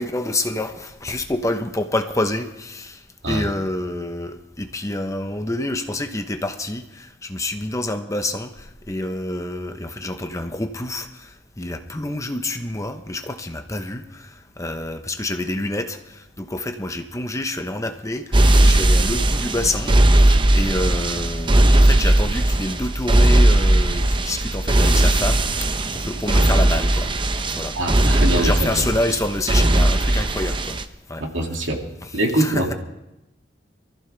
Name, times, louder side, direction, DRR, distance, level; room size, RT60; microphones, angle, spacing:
voice 1, 0.0-27.1 27.5-27.8 28.3-30.8 31.1-31.2 32.3-32.7, left 1 dB, 15° left, 6 dB, 0.9 m, -27 dB
sound 1, 18.3-30.8, right 1 dB, 25° right, 0.7 m, -18 dB
voice 2, 27.8-28.8 31.3-31.8 32.1-32.7, right 1 dB, 85° right, 1 dB, 2.5 m, -23 dB
23.5 x 14.5 x 3.4 m, 0.90 s
head